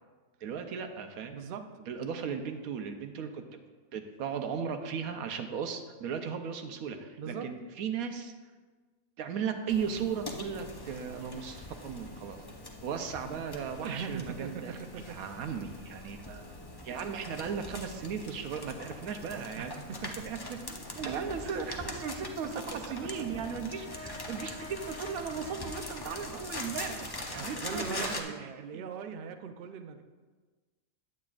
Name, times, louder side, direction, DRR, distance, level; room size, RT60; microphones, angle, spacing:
voice 1, 0.4-1.3 1.9-3.4 3.9-8.3 9.2-12.4 12.8-14.8 15.1-16.4 16.8-19.7 20.2-20.4 20.7-28.1 28.4-28.8, right 6 dB, 90° right, 6 dB, 1.2 m, -36 dB
voice 2, 1.3-1.7 7.2-7.5 13.8-15.2 19.6-20.3 21.4-21.6 22.4-23.2 27.3-30.0, right 6 dB, 65° right, 7 dB, 0.5 m, -40 dB
sound 1, 9.7-28.2, left 2 dB, 35° left, 0.4 m, -42 dB
Brass instrument, 22.5-27.0, left 4 dB, 65° left, 1.2 m, -49 dB
9.3 x 8.6 x 2.4 m, 1.4 s
omnidirectional pair, 1.5 m